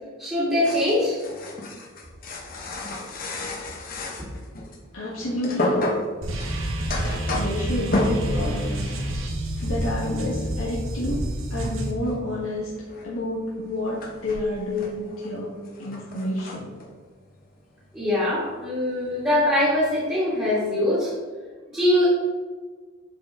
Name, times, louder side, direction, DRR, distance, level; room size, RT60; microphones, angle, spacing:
voice 1, 0.2-1.2 4.2-4.3 17.9-21.1 21.7-22.1, left 1 dB, 10° right, -10 dB, 2.4 m, -22 dB
sound 1, 0.6-4.9 5.2-8.7 9.0-9.3 9.6-9.9 10.2-18.2 18.5-18.8 19.1-20.0, left 1 dB, 40° left, 1.1 m, -32 dB
voice 2, 4.9-5.8 7.3-9.0 9.6-12.7 13.0-16.8, left 1 dB, 85° left, -6 dB, 1.4 m, -30 dB
sound 2, 6.2-11.9, right 1 dB, 70° right, 1.0 m, -28 dB
10.5 x 4.7 x 3.7 m, 1.5 s
head